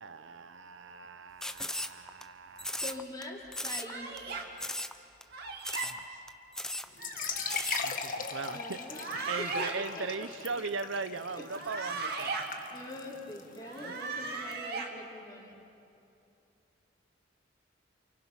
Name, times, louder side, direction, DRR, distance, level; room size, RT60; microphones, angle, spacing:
voice 1, 0.0-2.8 5.9-6.1 7.8-8.8 9.3-12.3 13.8-14.0, right 4 dB, 75° right, 11 dB, 0.8 m, -39 dB
sound 1, 1.4-2.2 2.6-3.2 3.5-3.9 4.2-4.3 4.6-5.0 5.2-5.3 5.6-6.0 6.3-6.4 6.5-6.9 7.3-7.8, left 1 dB, 5° left, 0.7 m, -36 dB
voice 2, 2.8-4.4 6.6-6.9 7.2-7.4 8.5-9.0 9.4-10.3 11.4-11.5 12.7-15.6, left 1 dB, 20° left, -2 dB, 3.8 m, -44 dB
sound 2, 3.8-4.4 5.3-5.9 7.0-7.8 8.8-9.7 11.4-12.5 13.6-14.9, right 4 dB, 55° right, 2.4 m, -37 dB
sound 3, 6.9-14.5, left 6 dB, 45° left, 1.3 m, -40 dB
29.0 x 28.0 x 5.8 m, 2.7 s
head